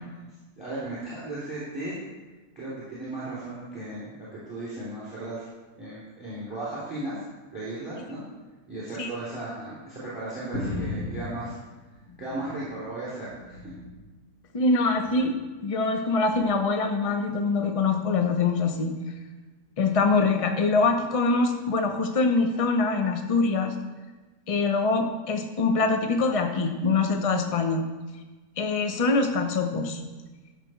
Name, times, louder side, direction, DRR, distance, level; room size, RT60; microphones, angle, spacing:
voice 1, 0.6-1.9 2.5-5.5 5.8-7.2 7.5-8.2 8.7-11.6 12.2-13.7, right 2 dB, 5° right, -9 dB, 3.5 m, -36 dB
sound 1, 10.5-12.8 13.1-14.1 14.9-15.3 16.3-16.5, left 2 dB, 55° left, 2.2 m, -36 dB
voice 2, 14.5-15.3 15.6-18.9 19.8-23.7 24.5-27.8 28.6-30.0, left 3 dB, 35° left, 5 dB, 0.6 m, -24 dB
12.0 x 6.7 x 4.6 m, 1.2 s
omnidirectional pair, 1.8 m